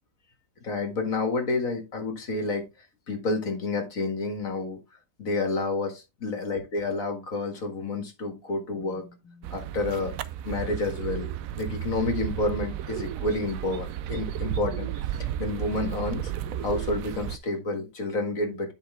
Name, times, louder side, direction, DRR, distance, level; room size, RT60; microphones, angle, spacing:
voice 1, 0.6-4.8 5.2-10.1 10.4-11.3 11.6-18.7, left 3 dB, 65° left, 4 dB, 2.2 m, -30 dB
sound 1, 9.4-17.4, right 10 dB, 70° right, 1.0 m, -33 dB
10.5 x 5.4 x 3.7 m, 0.26 s
omnidirectional pair, 1.6 m